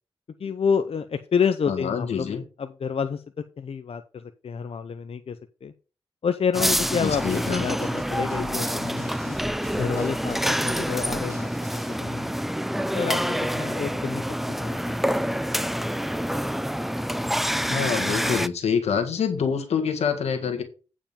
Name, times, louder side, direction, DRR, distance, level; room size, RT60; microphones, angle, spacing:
voice 1, 0.4-3.2 3.6-5.7 6.2-9.4 9.7-12.4 12.9-15.2, left 6 dB, 65° left, 9 dB, 0.7 m, -29 dB
voice 2, 1.7-2.4 7.0-7.6 17.7-20.6, left 6 dB, 85° left, 7 dB, 1.6 m, -26 dB
sound 1, 6.5-18.5, equal, ahead, 0.6 m, -27 dB
sound 2, 6.6-12.0, right 2 dB, 30° right, 1.8 m, -45 dB
9.0 x 5.2 x 5.2 m, 0.35 s
cardioid pair, 50°, 11 cm